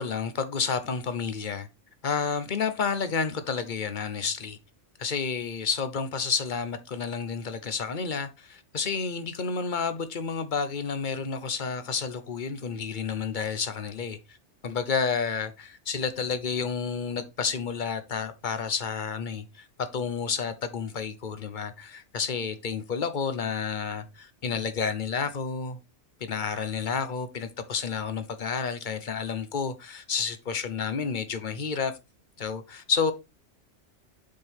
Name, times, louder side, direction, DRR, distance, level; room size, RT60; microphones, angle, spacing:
voice 1, 0.0-1.7 2.0-4.6 5.0-14.2 14.6-25.8 26.2-31.9 32.4-33.1, left 5 dB, 45° left, 1.1 m, -30 dB
7.5 x 5.6 x 3.5 m
omnidirectional pair, 1.3 m